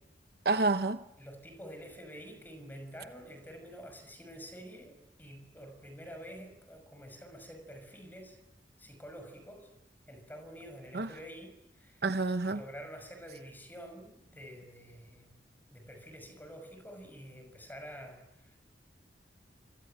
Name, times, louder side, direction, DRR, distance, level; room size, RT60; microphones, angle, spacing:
voice 1, 0.4-1.0 10.9-11.1 12.0-12.6, right 3 dB, 60° right, 0.9 m, -28 dB
voice 2, 1.2-8.4 8.8-9.7 10.1-12.1 12.4-15.3 15.7-18.6, equal, 10° left, 6.0 m, -48 dB
26.0 x 24.5 x 9.0 m
head